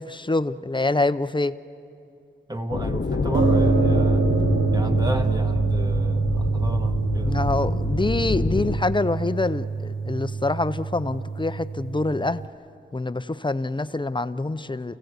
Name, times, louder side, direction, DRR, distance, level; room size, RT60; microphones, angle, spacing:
voice 1, 0.0-1.6 7.3-12.4 12.9-15.0, left 2 dB, 25° left, 13 dB, 0.6 m, -25 dB
voice 2, 2.5-4.2 4.7-7.5, right 1 dB, 20° right, 5 dB, 1.4 m, -33 dB
sound 1, 2.7-8.8, left 4 dB, 65° left, 1.1 m, -27 dB
sound 2, 3.3-12.5, right 4 dB, 70° right, 0.8 m, -25 dB
29.0 x 16.5 x 8.2 m, 2.5 s
wide cardioid pair, 95°, 21 cm